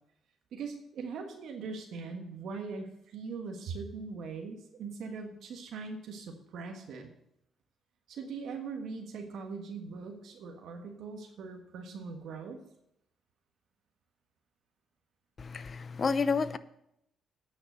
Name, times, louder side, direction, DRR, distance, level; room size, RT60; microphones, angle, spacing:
voice 1, 0.5-7.1 8.1-12.6, right 4 dB, 75° right, 3 dB, 1.5 m, -41 dB
voice 2, 15.4-16.6, left 5 dB, 40° left, 15 dB, 0.6 m, -30 dB
9.5 x 5.9 x 7.7 m, 0.78 s
cardioid pair, 90°, 0 cm